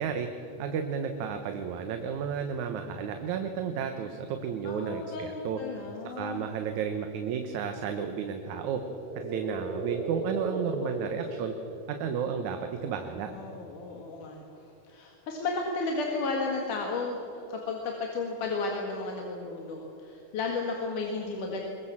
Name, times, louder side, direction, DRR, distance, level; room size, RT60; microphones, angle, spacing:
voice 1, 0.0-5.6 6.0-8.8 9.2-11.5 11.9-13.3, right 7 dB, 70° right, 6 dB, 2.4 m, -32 dB
voice 2, 4.6-6.5 10.8-11.0 13.3-14.4 14.9-17.2 17.5-21.6, left 3 dB, 75° left, 0 dB, 3.4 m, -33 dB
sound 1, 8.4-12.4, right 2 dB, 40° right, 0.7 m, -37 dB
22.0 x 22.0 x 7.4 m, 2.9 s
omnidirectional pair, 3.6 m